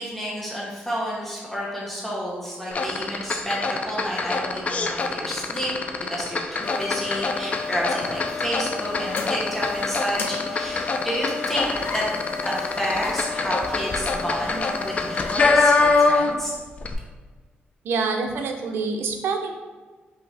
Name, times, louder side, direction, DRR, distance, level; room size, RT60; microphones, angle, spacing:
voice 1, 0.0-5.7 6.1-16.6, equal, 5° left, -5 dB, 1.0 m, -30 dB
sound 1, 2.7-16.5 16.8-16.9, left 3 dB, 40° left, 0.4 m, -24 dB
sound 2, 6.6-15.5, left 5 dB, 75° left, 0.8 m, -32 dB
voice 2, 17.8-19.5, right 4 dB, 85° right, 3 dB, 0.6 m, -26 dB
5.3 x 2.7 x 3.3 m, 1.4 s
cardioid pair, 125°, 4 cm